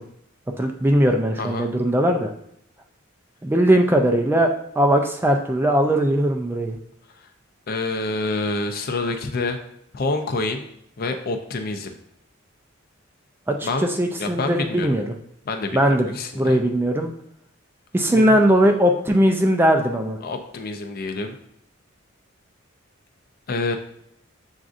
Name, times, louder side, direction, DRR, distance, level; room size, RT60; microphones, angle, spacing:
voice 1, 0.6-2.3 3.4-4.5 4.8-6.8 13.5-13.7 14.0-15.0 15.7-16.1 16.4-17.1 17.9-20.2, equal, 10° right, 3 dB, 0.3 m, -19 dB
voice 2, 1.4-1.7 7.2-7.3 7.7-9.6 9.9-10.6 11.0-12.0 13.6-13.9 14.2-15.0 15.5-16.6 18.0-18.4 20.2-21.4 23.5-23.8, left 3 dB, 45° left, 5 dB, 0.5 m, -27 dB
7.1 x 2.6 x 2.4 m, 0.72 s
head